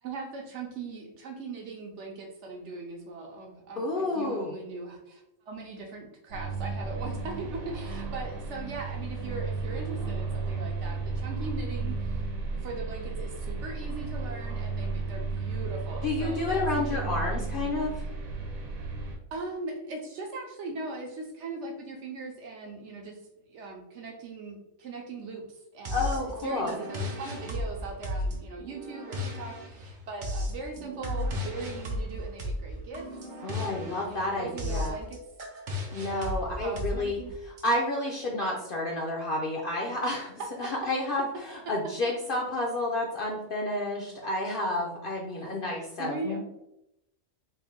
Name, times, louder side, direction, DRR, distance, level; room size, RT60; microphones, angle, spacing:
voice 1, 0.0-12.2 12.6-17.2 19.3-23.2 23.5-26.1 26.4-33.2 34.1-35.2 36.0-37.3 40.4-40.7 46.0-46.4, right 3 dB, 65° right, 2 dB, 0.9 m, -40 dB
voice 2, 3.8-4.5 16.0-18.1 25.9-26.7 33.4-34.9 35.9-40.3 40.6-46.4, left 2 dB, 60° left, -1 dB, 0.6 m, -30 dB
sound 1, 6.3-19.2, right 3 dB, 90° right, 1.2 m, -33 dB
sound 2, 25.9-37.6, left 1 dB, 50° right, 0.6 m, -35 dB
3.3 x 2.6 x 3.6 m, 0.85 s
omnidirectional pair, 1.4 m